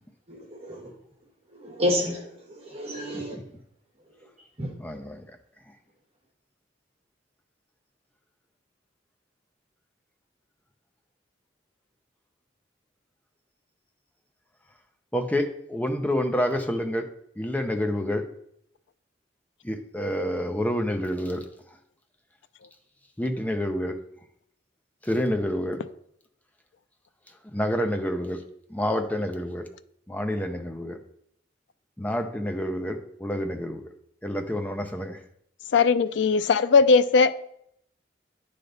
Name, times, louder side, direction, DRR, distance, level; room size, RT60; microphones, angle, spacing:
voice 1, 0.3-0.9 1.6-2.3 2.6-3.4 4.6-4.7, equal, 35° right, -1 dB, 1.4 m, -29 dB
voice 2, 4.8-5.2 15.1-17.1 17.4-18.2 19.6-21.4 23.2-24.0 25.0-25.8 27.5-28.4 28.7-29.6 30.1-31.0 32.0-33.8 34.2-35.2, equal, 10° left, 5 dB, 0.6 m, -28 dB
voice 3, 35.7-37.4, left 5 dB, 75° left, 14 dB, 0.4 m, -19 dB
10.0 x 3.4 x 3.9 m, 0.72 s
head